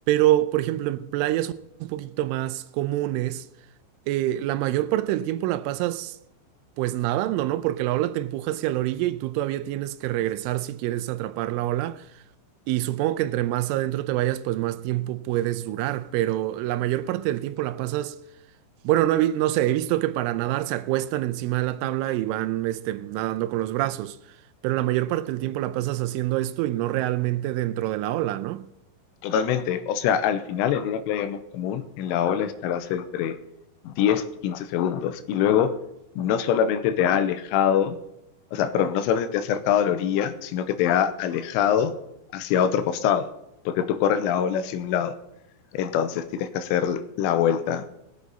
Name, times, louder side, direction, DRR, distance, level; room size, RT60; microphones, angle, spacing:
voice 1, 0.1-1.5 1.8-3.5 4.1-6.2 6.8-12.2 12.7-18.2 18.8-24.2 24.6-28.7, right 14 dB, 85° right, 3.1 m, -26 dB
voice 2, 29.2-33.4 33.8-35.7 36.2-38.0 38.5-41.9 42.3-43.3 43.7-45.1 45.7-47.9, left 9 dB, 90° left, 3.3 m, -24 dB
21.0 x 8.3 x 4.0 m
omnidirectional pair, 5.6 m